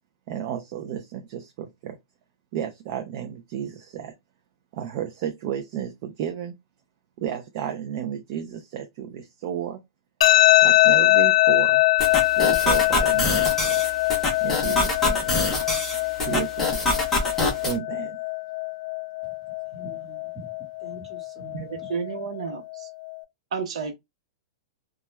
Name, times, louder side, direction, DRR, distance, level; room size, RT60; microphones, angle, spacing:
voice 1, 0.3-2.0 2.5-4.1 4.7-6.6 7.2-9.8 10.6-11.8 12.2-13.8 14.4-15.4 16.2-16.9 17.6-18.2, right 9 dB, 35° right, 0.4 m, -32 dB
sound 1, 10.2-23.2, left 18 dB, 90° left, 0.4 m, -23 dB
sound 2, 12.0-17.8, left 2 dB, 10° left, 0.6 m, -26 dB
voice 2, 19.7-21.9, equal, 10° right, 1.1 m, -44 dB
voice 3, 21.5-22.9 23.5-24.0, right 5 dB, 70° right, 0.7 m, -31 dB
2.2 x 2.1 x 2.9 m
supercardioid pair, 170°, 3 cm